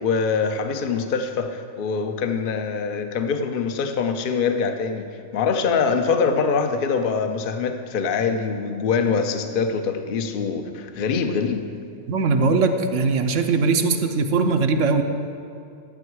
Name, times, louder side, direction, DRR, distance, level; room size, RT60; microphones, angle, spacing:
voice 1, 0.0-5.1 5.3-11.7, left 5 dB, 50° left, 7 dB, 0.8 m, -24 dB
voice 2, 12.1-15.0, right 4 dB, 70° right, 6 dB, 1.0 m, -20 dB
11.5 x 8.1 x 4.7 m, 2.6 s
omnidirectional pair, 1.4 m